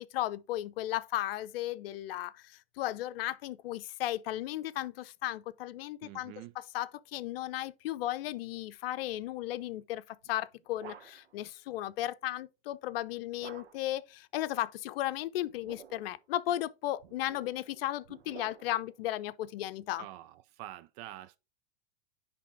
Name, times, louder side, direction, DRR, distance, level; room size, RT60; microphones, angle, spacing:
voice 1, 0.0-20.1, left 14 dB, 65° left, 0.7 m, -35 dB
voice 2, 6.0-6.5 20.0-21.4, right 14 dB, 40° right, 0.4 m, -46 dB
sound 1, 10.2-11.4 13.4-14.0 15.4-16.2 17.0-18.9, right 8 dB, 80° right, 1.1 m, -52 dB
10.0 x 3.5 x 3.5 m
hypercardioid pair, 110°, 32 cm